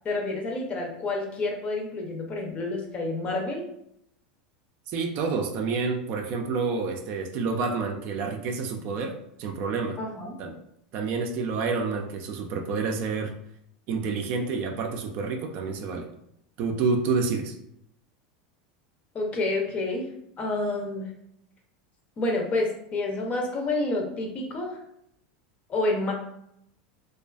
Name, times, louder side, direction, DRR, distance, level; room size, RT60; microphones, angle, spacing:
voice 1, 0.0-3.6 10.0-10.4 19.1-20.1 20.4-21.1 22.2-24.8 25.7-26.1, left 2 dB, 30° left, 1 dB, 0.6 m, -29 dB
voice 2, 4.9-10.0 10.4-10.5 10.9-13.3 13.9-16.1 16.6-17.5, right 4 dB, 50° right, 3 dB, 0.4 m, -28 dB
2.4 x 2.4 x 2.3 m, 0.76 s
supercardioid pair, 120°, 4 cm